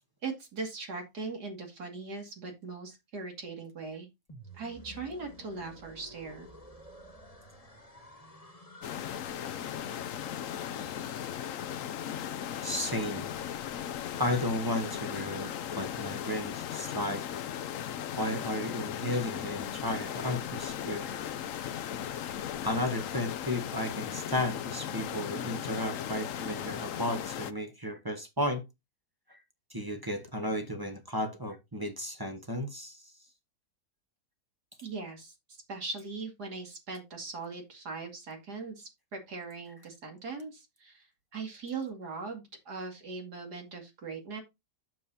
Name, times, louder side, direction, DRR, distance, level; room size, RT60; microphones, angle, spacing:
voice 1, 0.2-4.1 4.5-6.5 34.8-35.3 35.7-41.0 41.3-44.4, right 4 dB, 70° right, 2.9 m, -40 dB
sound 1, 4.3-12.2, equal, 20° left, 1.9 m, -52 dB
sound 2, 8.8-27.5, left 9 dB, 60° left, 0.9 m, -37 dB
voice 2, 12.6-13.3 14.2-17.3 18.2-21.2 22.6-28.6 29.3-29.4 29.7-33.1, left 1 dB, 15° right, 1.2 m, -34 dB
9.1 x 7.2 x 2.8 m
omnidirectional pair, 1.8 m